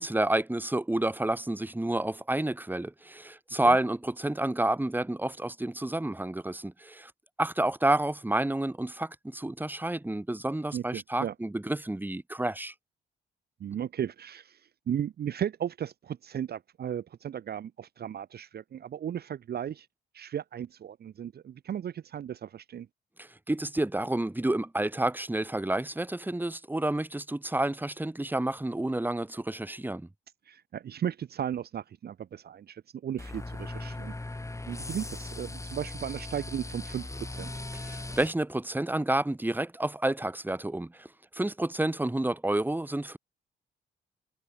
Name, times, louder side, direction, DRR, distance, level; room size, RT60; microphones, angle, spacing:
voice 1, 0.0-7.1 7.4-12.7 23.2-30.1 37.7-41.1 41.3-43.2, right 1 dB, 10° right, 2.9 m, -29 dB
voice 2, 10.7-11.3 13.6-19.9 20.1-22.9 30.5-34.1 34.7-37.6, right 9 dB, 55° right, 1.0 m, -35 dB
sound 1, 33.2-38.3, left 2 dB, 15° left, 6.0 m, -39 dB
cardioid pair, 90°, 20 cm